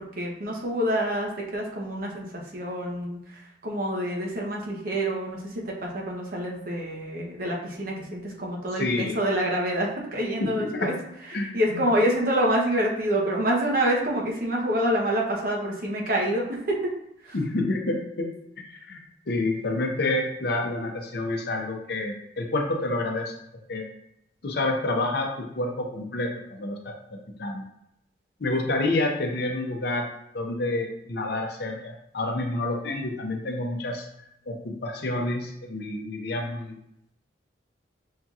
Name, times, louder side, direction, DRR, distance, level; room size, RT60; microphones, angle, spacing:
voice 1, 0.2-10.9 11.3-16.8 17.2-17.4, right 1 dB, 50° right, -2 dB, 0.9 m, -27 dB
voice 2, 8.8-9.1 10.4-10.9 11.3-11.8 17.3-23.3 23.7-23.9 24.4-27.6 28.4-30.1 30.3-34.1 34.5-36.8, left 2 dB, 60° left, 2 dB, 0.6 m, -29 dB
5.6 x 2.8 x 2.4 m, 0.77 s
head